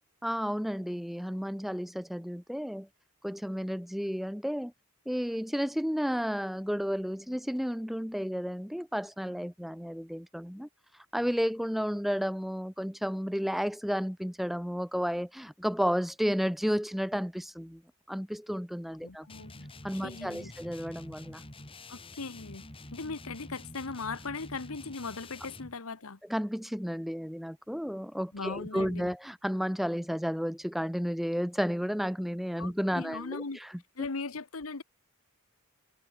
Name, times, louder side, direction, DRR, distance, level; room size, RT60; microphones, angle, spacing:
voice 1, 0.2-2.9 3.2-4.7 5.1-10.7 11.1-17.8 18.1-19.3 19.8-21.4 26.3-33.7, equal, ahead, 0.7 m, -32 dB
voice 2, 19.0-19.7 20.0-20.5 21.9-22.6 22.9-26.2 28.3-29.1 32.6-33.6 34.0-34.8, left 4 dB, 85° left, 1.3 m, -39 dB
sound 1, 19.3-25.8, left 2 dB, 25° left, 3.7 m, -47 dB
head